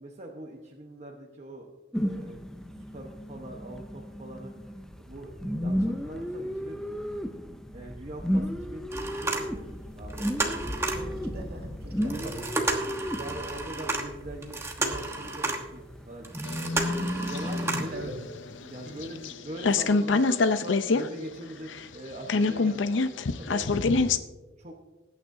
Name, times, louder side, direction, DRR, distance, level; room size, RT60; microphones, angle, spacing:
voice 1, 0.0-2.4 2.9-6.8 7.7-9.7 9.9-11.1 12.2-12.5 13.1-16.8 17.3-18.1 18.5-22.9 23.4-24.1 24.6-24.7, right 1 dB, 40° right, -1 dB, 1.1 m, -42 dB
sound 1, 1.9-18.1, equal, 5° left, 0.6 m, -34 dB
sound 2, 8.9-9.8 10.1-11.1 12.0-15.8 16.2-18.0 18.5-18.6 19.0-19.1, right 2 dB, 15° right, 1.1 m, -32 dB
voice 2, 10.9-12.7 17.6-18.1 18.8-19.1, equal, 55° right, 1 dB, 2.1 m, -41 dB
sound 3, 16.5-19.3 19.6-21.1 21.3-21.4 21.7-24.2, left 3 dB, 80° left, 0.6 m, -26 dB
20.5 x 9.2 x 2.7 m, 1.2 s
head